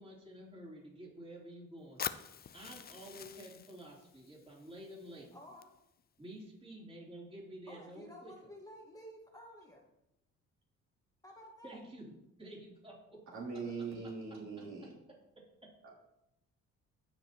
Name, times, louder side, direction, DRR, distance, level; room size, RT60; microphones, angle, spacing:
voice 1, 0.0-5.3 6.2-8.3 11.6-12.1 12.4-13.4, right 1 dB, 20° right, -4 dB, 3.3 m, -50 dB
Fire, 2.0-6.0, left 8 dB, 30° left, 0.4 m, -46 dB
voice 2, 5.1-5.7 7.7-9.9 11.2-11.8 13.6-13.7, left 1 dB, 10° left, -1 dB, 1.6 m, -53 dB
voice 3, 13.3-14.9, right 4 dB, 65° right, -5 dB, 3.7 m, -41 dB
15.0 x 5.2 x 2.9 m, 0.84 s
cardioid pair, 90°, 30 cm